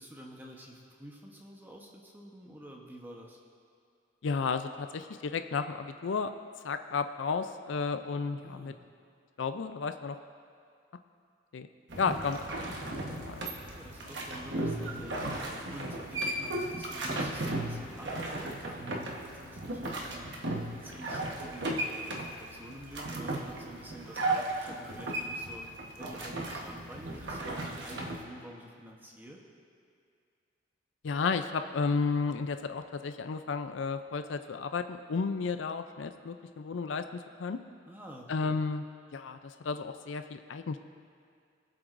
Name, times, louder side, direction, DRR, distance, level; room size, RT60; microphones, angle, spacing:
voice 1, 0.0-3.4 8.4-8.8 13.5-15.3 15.7-25.7 26.0-29.4 37.9-38.6, right 1 dB, 10° right, -1 dB, 1.0 m, -48 dB
voice 2, 4.2-6.3 6.6-8.7 9.4-10.2 11.5-11.7 12.0-12.4 12.9-13.4 31.0-37.6 38.3-38.8 39.1-40.8, left 4 dB, 75° left, 9 dB, 0.4 m, -33 dB
sound 1, 11.9-28.2, right 2 dB, 70° right, 1.2 m, -35 dB
sound 2, 12.4-23.8, left 4 dB, 85° right, 1.5 m, -57 dB
22.5 x 7.7 x 2.6 m, 2.3 s
head